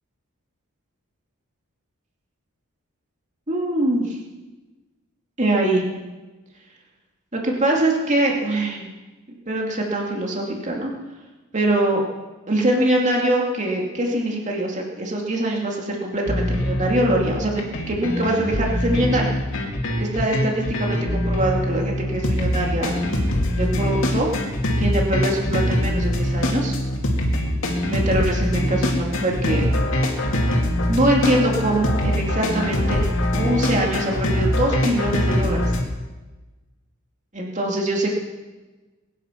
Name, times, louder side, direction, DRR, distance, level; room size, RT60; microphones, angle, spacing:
voice 1, 3.5-4.2 5.4-5.8 7.3-8.9 9.3-10.9 11.5-12.0 12.5-19.3 20.0-23.0 23.6-24.3 24.8-26.8 27.8-29.8 30.9-33.0 33.3-35.7 37.3-38.1, right 1 dB, 35° right, -1 dB, 2.5 m, -23 dB
sound 1, 16.2-35.8, left 1 dB, 60° left, 2.7 m, -23 dB
22.0 x 10.0 x 5.9 m, 1.2 s
head